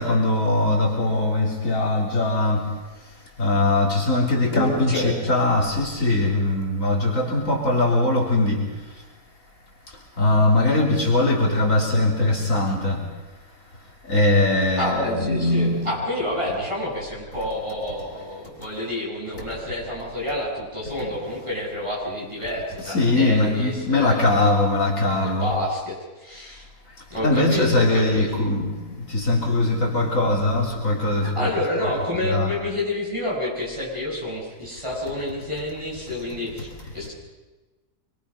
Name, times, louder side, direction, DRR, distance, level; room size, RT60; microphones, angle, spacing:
voice 1, 0.0-2.7 3.4-8.7 10.2-13.1 14.1-15.9 22.8-25.5 27.2-31.5 32.2-32.5, left 2 dB, 55° left, -2 dB, 3.7 m, -21 dB
voice 2, 4.5-5.1 14.8-24.3 25.2-26.7 27.1-28.3 31.2-37.1, left 1 dB, 20° right, -4 dB, 7.4 m, -29 dB
26.0 x 23.0 x 5.6 m, 1.2 s
omnidirectional pair, 1.6 m